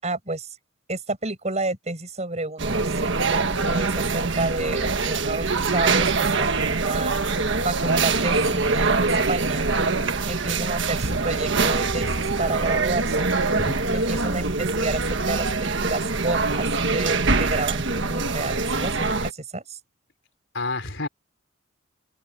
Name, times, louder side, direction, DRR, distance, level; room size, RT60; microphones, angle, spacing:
voice 1, 0.0-0.6 0.9-7.2 7.6-9.7 10.3-13.3 13.9-19.8, right 2 dB, 30° right, 7.7 m, -30 dB
sound 1, 2.6-19.3, right 3 dB, 60° right, 1.5 m, -24 dB
voice 2, 20.5-21.1, left 2 dB, 60° left, 5.0 m, -30 dB
open air
head